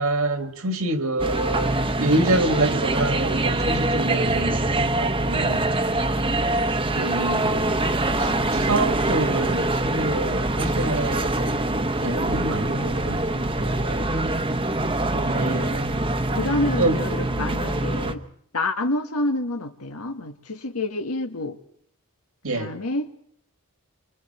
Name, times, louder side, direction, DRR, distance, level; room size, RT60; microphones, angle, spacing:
voice 1, 0.0-5.7 7.0-11.6 12.0-14.1 15.1-16.0 16.8-17.0 22.4-22.7, right 2 dB, 70° right, 2.1 m, -27 dB
sound 1, 1.2-18.1, right 2 dB, 25° right, 1.1 m, -24 dB
voice 2, 7.2-7.5 8.1-8.7 15.3-15.8 16.3-18.2 18.5-21.6 22.5-23.1, left 2 dB, 90° left, 1.8 m, -28 dB
28.0 x 24.5 x 4.5 m
head